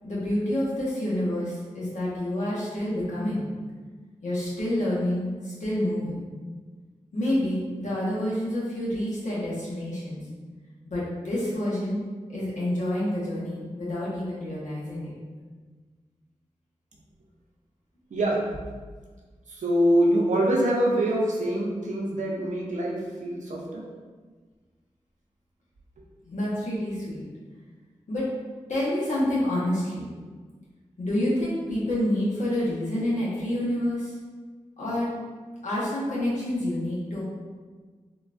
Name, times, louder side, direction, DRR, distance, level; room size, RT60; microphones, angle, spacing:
voice 1, 0.0-3.5 4.2-6.2 7.1-10.2 10.9-12.0 12.3-15.1 26.2-27.2 28.1-28.3 28.7-30.0 31.0-34.1 34.8-35.1 35.6-37.2, left 1 dB, 90° left, -7 dB, 1.0 m, -28 dB
voice 2, 19.5-23.8, right 1 dB, 80° right, -2 dB, 0.6 m, -24 dB
3.7 x 2.3 x 2.5 m, 1.4 s
cardioid pair, 55°, 12 cm